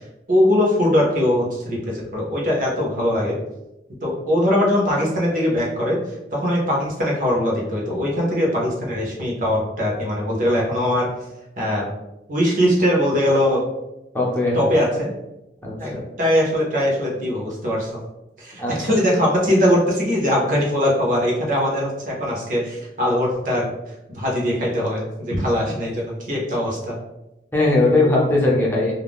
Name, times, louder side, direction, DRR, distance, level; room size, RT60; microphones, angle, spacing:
voice 1, 0.3-3.4 4.0-6.0 6.3-11.1 11.6-11.9 12.3-13.6 14.5-15.1 15.8-17.9 18.4-23.7 24.1-26.9, left 1 dB, 45° right, -3 dB, 0.8 m, -21 dB
voice 2, 14.1-14.6 15.6-16.0 18.6-18.7 25.3-25.4 27.5-28.9, left 2 dB, 10° left, -4 dB, 0.6 m, -19 dB
2.4 x 2.2 x 3.4 m, 0.93 s
head